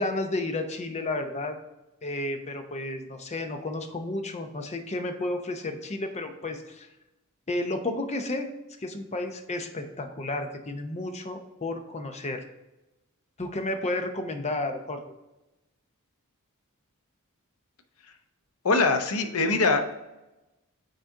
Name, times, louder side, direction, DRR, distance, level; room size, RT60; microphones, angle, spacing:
voice 1, 0.0-1.6 2.0-6.9 7.5-8.5 8.8-12.4 13.4-15.0, left 2 dB, 30° left, 6 dB, 0.7 m, -32 dB
voice 2, 18.6-19.9, left 3 dB, 75° left, 7 dB, 0.8 m, -23 dB
8.9 x 4.2 x 3.7 m, 0.99 s
head